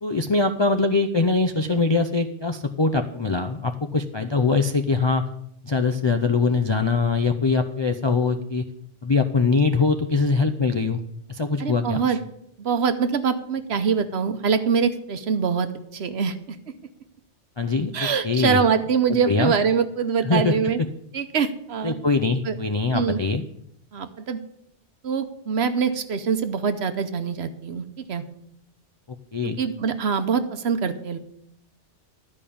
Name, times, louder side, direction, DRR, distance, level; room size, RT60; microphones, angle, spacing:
voice 1, 0.0-5.2 5.6-8.7 9.0-11.0 11.3-12.0 17.6-18.6 19.1-19.5 20.2-20.6 21.8-23.4 29.1-29.6, left 4 dB, 40° left, 5 dB, 0.4 m, -22 dB
voice 2, 11.6-12.2 12.6-16.6 17.9-20.8 21.1-21.9 22.4-22.6 22.9-23.2 23.9-24.4 25.0-28.2 29.4-31.2, right 6 dB, 65° right, 10 dB, 1.1 m, -24 dB
12.5 x 5.3 x 8.5 m, 0.75 s
omnidirectional pair, 1.2 m